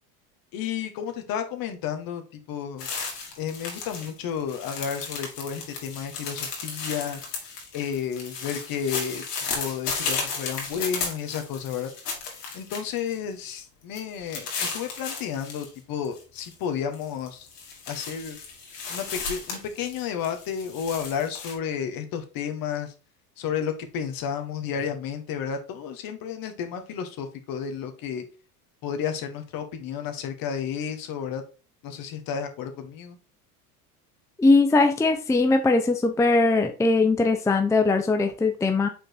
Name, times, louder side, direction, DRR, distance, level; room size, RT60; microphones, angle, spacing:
voice 1, 0.5-2.9 3.4-7.2 7.7-9.2 9.5-11.9 12.5-17.5 17.9-18.4 18.9-22.9 23.4-28.2 28.8-31.4 31.8-33.2, left 7 dB, 45° left, 6 dB, 1.6 m, -32 dB
sound 1, 2.8-4.1 4.4-13.1 13.5-13.6 13.9-15.7 16.0-16.5 16.9-21.5, left 5 dB, 90° left, 2.2 m, -34 dB
voice 2, 34.4-38.9, left 3 dB, 5° left, 6 dB, 0.6 m, -20 dB
5.1 x 4.4 x 4.6 m, 0.33 s
hypercardioid pair, 95°, 46 cm